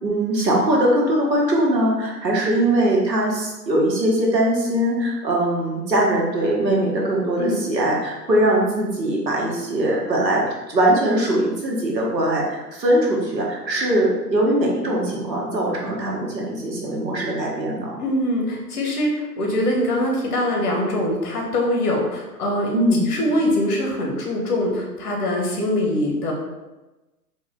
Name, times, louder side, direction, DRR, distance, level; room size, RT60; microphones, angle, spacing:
voice 1, 0.0-18.0 22.7-23.1, right 1 dB, 85° right, -2 dB, 1.3 m, -21 dB
voice 2, 18.0-22.7 23.1-26.3, left 1 dB, 65° left, 0 dB, 1.2 m, -23 dB
4.2 x 2.2 x 3.6 m, 1.1 s
figure-of-eight pair, 115°, 49 cm